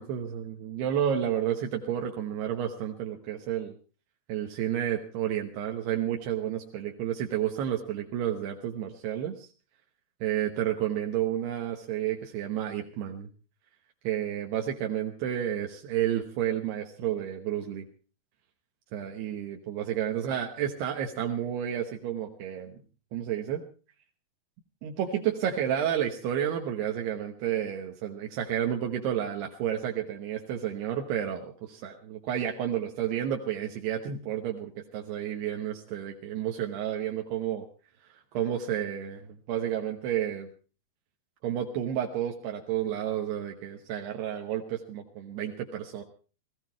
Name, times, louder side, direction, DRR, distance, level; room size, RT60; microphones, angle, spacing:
voice 1, 0.0-3.8 4.3-9.5 10.2-13.3 14.0-17.9 18.9-22.8 23.1-23.6 24.8-37.7 38.0-40.5 41.4-46.0, right 10 dB, 80° right, 2 dB, 3.2 m, -31 dB
18.0 x 15.5 x 4.5 m, 0.37 s
omnidirectional pair, 4.7 m